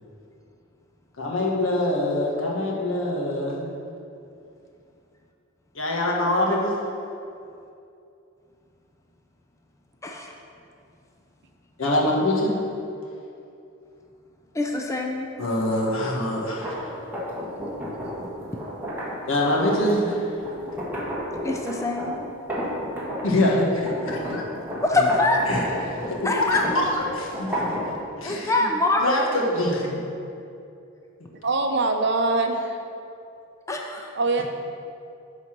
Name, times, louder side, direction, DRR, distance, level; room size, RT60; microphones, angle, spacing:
voice 1, 1.2-3.7 5.7-6.7 11.8-12.5 15.4-16.7 19.3-20.2 23.2-24.4 24.7-25.0 25.5-27.7 28.2-28.7 29.0-30.1, left 1 dB, 75° left, -3 dB, 1.5 m, -24 dB
voice 2, 10.0-10.3 14.5-15.3 21.4-22.1 24.8-25.4 26.2-26.6 28.3-29.2 33.7-34.1, left 2 dB, 15° left, 1 dB, 0.5 m, -24 dB
sound 1, 16.5-23.5 23.8-28.0, equal, 10° right, 1.5 m, -32 dB
voice 3, 31.4-32.8 34.1-34.4, right 3 dB, 55° right, 5 dB, 0.7 m, -23 dB
9.8 x 4.1 x 6.0 m, 2.6 s
head